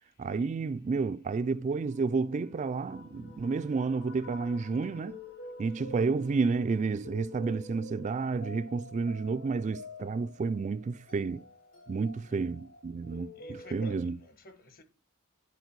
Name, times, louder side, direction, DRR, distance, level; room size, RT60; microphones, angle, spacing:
voice 1, 0.2-5.2 5.6-11.5 11.9-14.2, right 4 dB, 35° right, 0.3 m, -31 dB
sound 1, 1.7-14.0, left 2 dB, 60° left, 3.8 m, -49 dB
voice 2, 13.3-14.8, left 2 dB, 45° left, 1.2 m, -52 dB
10.5 x 4.3 x 4.6 m
head